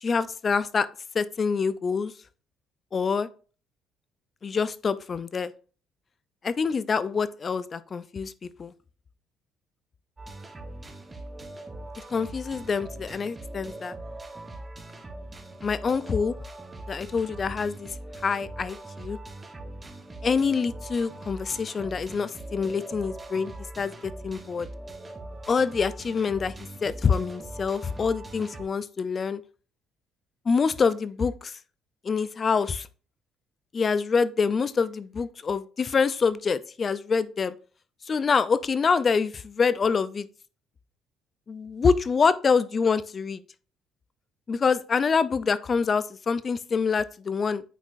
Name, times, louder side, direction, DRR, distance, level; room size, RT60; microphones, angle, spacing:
voice 1, 0.0-0.9 1.1-2.1 2.9-3.3 4.4-5.5 6.4-8.7 12.1-13.9 15.6-16.3 16.9-17.9 18.2-19.2 20.2-24.7 25.5-26.5 26.8-29.4 30.5-31.6 32.0-32.9 33.7-37.5 38.1-40.3 41.5-43.4 44.5-47.6, left 5 dB, 35° left, 0.5 m, -26 dB
sound 1, 10.2-28.7, right 2 dB, 20° right, 1.0 m, -41 dB
9.0 x 4.3 x 2.6 m
cardioid pair, 100°, 0 cm